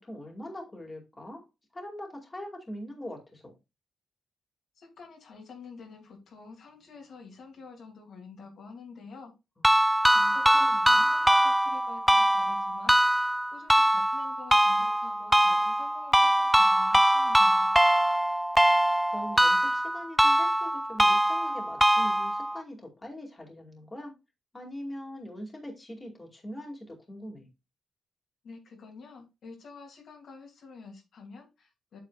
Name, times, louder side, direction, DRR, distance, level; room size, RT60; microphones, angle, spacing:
voice 1, 0.0-1.4 1.7-3.5 9.6-9.7 10.4-11.1 19.1-24.1 24.5-27.5, left 1 dB, 20° left, 0 dB, 2.4 m, -42 dB
voice 2, 4.7-9.3 10.1-17.7 28.4-32.0, left 4 dB, 70° left, 1 dB, 2.8 m, -48 dB
sound 1, 9.6-22.6, right 1 dB, ahead, 0.3 m, -23 dB
8.3 x 7.1 x 2.4 m, 0.24 s
cardioid pair, 110°, 0 cm